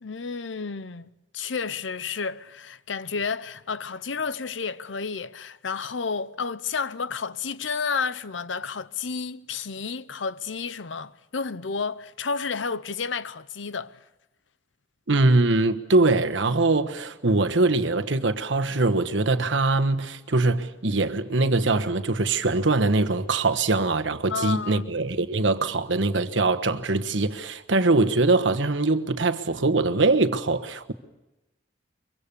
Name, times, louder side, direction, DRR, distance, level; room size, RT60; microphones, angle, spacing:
voice 1, 0.0-14.0 24.3-24.9, left 5 dB, 85° left, 0.8 m, -31 dB
voice 2, 15.1-30.9, right 2 dB, 85° right, 1.3 m, -22 dB
24.0 x 23.5 x 6.9 m
head